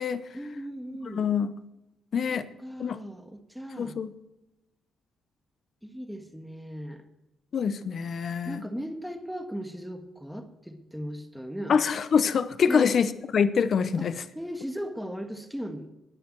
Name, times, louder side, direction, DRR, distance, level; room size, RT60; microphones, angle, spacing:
voice 1, 0.3-1.3 2.3-4.0 5.8-7.0 8.4-11.8 12.7-12.9 14.0-14.1 14.3-15.9, equal, ahead, 1.6 m, -37 dB
voice 2, 1.0-1.5 2.1-2.5 2.8-3.0 3.8-4.1 7.5-8.6 11.7-14.2, left 6 dB, 55° left, 0.8 m, -25 dB
20.0 x 6.7 x 4.6 m
cardioid pair, 90°, 0 cm